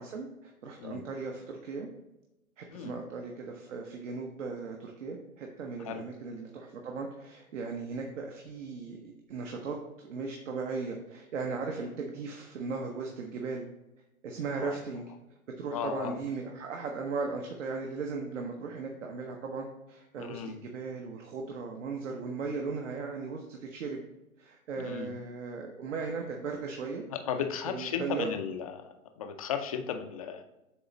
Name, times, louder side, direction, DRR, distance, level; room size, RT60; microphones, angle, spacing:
voice 1, 0.0-1.9 2.6-9.0 9.3-13.7 14.2-15.0 15.6-24.0 24.4-27.0 27.7-28.3, right 4 dB, 60° right, 2 dB, 1.0 m, -37 dB
voice 2, 15.7-16.2 20.2-20.6 24.8-25.1 27.1-28.9 29.2-30.4, left 8 dB, 25° left, 6 dB, 0.4 m, -35 dB
7.9 x 3.0 x 3.9 m, 0.96 s
hypercardioid pair, 135°, 42 cm